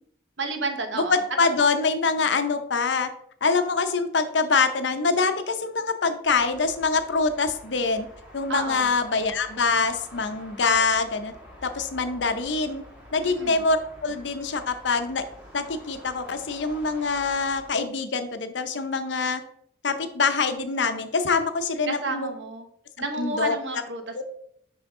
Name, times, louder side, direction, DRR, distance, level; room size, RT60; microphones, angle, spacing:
voice 1, 0.4-1.1 8.5-8.9 13.2-13.6 21.9-22.6 23.0-24.0, right 3 dB, 80° right, 6 dB, 1.0 m, -31 dB
voice 2, 0.9-3.1 3.4-8.1 8.3-11.3 11.6-12.8 13.1-15.2 15.5-19.4 19.8-22.3 23.1-23.6 24.1-24.2, left 4 dB, 75° left, 9 dB, 0.7 m, -24 dB
sound 1, 6.2-17.7, equal, 10° right, 1.8 m, -47 dB
6.1 x 5.7 x 3.7 m, 0.69 s
head